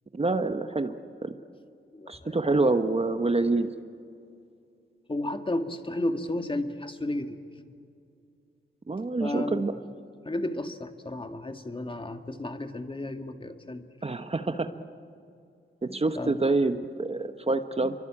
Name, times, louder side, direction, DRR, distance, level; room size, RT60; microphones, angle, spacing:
voice 1, 0.1-1.0 1.2-1.3 2.1-3.7 8.9-9.7 14.0-14.8 15.8-17.9, right 3 dB, 30° right, 8 dB, 1.2 m, -26 dB
voice 2, 1.9-2.4 5.1-7.4 9.2-9.8 10.3-13.9 16.2-16.4, left 1 dB, 25° left, 7 dB, 1.8 m, -33 dB
28.0 x 23.5 x 8.7 m, 2.5 s
wide cardioid pair, 90°, 20 cm